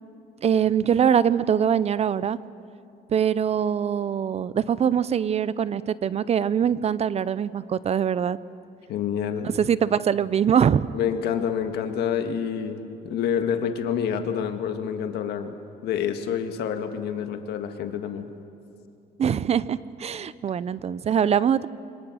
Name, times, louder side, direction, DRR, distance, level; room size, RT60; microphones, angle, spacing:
voice 1, 0.4-2.4 3.1-8.4 9.4-10.9 19.2-21.7, right 8 dB, 40° right, 18 dB, 0.6 m, -23 dB
voice 2, 8.9-9.5 10.9-15.5 15.8-18.3, left 8 dB, 75° left, 7 dB, 1.8 m, -28 dB
26.5 x 24.5 x 6.3 m, 2.6 s
cardioid pair, 110°, 17 cm